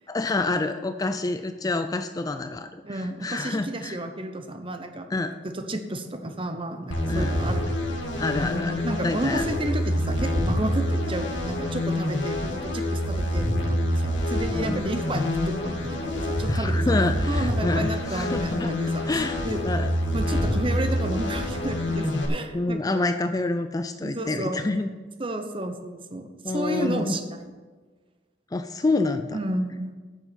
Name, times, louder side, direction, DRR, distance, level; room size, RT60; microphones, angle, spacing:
voice 1, 0.1-4.0 5.1-5.3 7.1-7.3 8.2-9.5 14.5-14.8 16.5-18.7 19.1-19.9 22.5-24.9 26.4-27.2 28.5-29.4, left 2 dB, 20° left, 9 dB, 0.4 m, -27 dB
voice 2, 2.8-5.1 5.4-8.0 8.8-16.9 17.3-19.6 20.1-22.9 24.0-24.7 25.2-26.3 26.5-27.5 29.3-30.0, right 1 dB, 30° right, 7 dB, 0.9 m, -31 dB
sound 1, 6.9-22.3, left 1 dB, 80° left, 2.3 m, -26 dB
10.0 x 7.2 x 6.9 m, 1.4 s
head